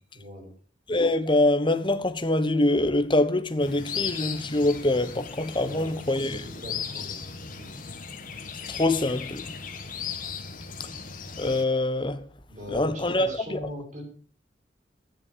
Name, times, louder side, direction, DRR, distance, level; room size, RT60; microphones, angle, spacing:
voice 1, 0.1-0.5 5.6-7.7 12.5-14.0, equal, 40° right, 7.5 m, -41 dB
voice 2, 0.9-6.4 8.7-9.5 11.4-12.3 12.7-13.6, left 2 dB, 25° left, 1.2 m, -24 dB
sound 1, 3.6-11.6, left 6 dB, 45° left, 1.9 m, -37 dB
13.0 x 10.5 x 7.0 m
head